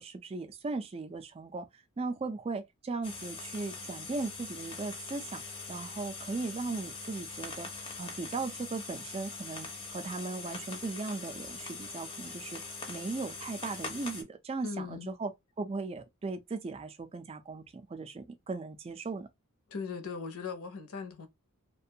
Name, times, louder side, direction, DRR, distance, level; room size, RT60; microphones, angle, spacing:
voice 1, 0.0-1.7 2.0-5.4 5.7-7.7 8.0-12.6 12.9-15.3 15.6-19.3, right 3 dB, 25° right, 0.3 m, -37 dB
sound 1, 3.0-14.2, left 4 dB, 25° left, 0.5 m, -42 dB
voice 2, 14.6-15.2 19.7-21.3, left 5 dB, 75° left, 0.7 m, -39 dB
2.5 x 2.2 x 2.7 m
head